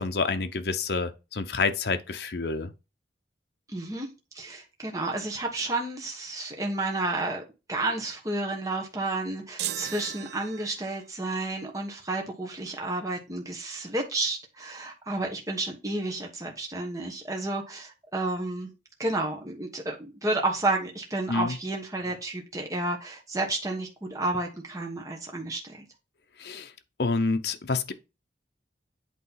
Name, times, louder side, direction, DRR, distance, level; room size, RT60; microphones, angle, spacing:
voice 1, 0.0-2.7 21.3-21.6 26.4-26.7 27.0-27.9, left 4 dB, 65° left, 0.7 m, -28 dB
voice 2, 3.7-4.1 4.3-7.4 7.7-18.7 19.0-25.8, right 2 dB, 20° right, 1.2 m, -31 dB
sound 1, 9.6-11.1, right 12 dB, 60° right, 0.4 m, -36 dB
8.3 x 3.1 x 5.6 m
head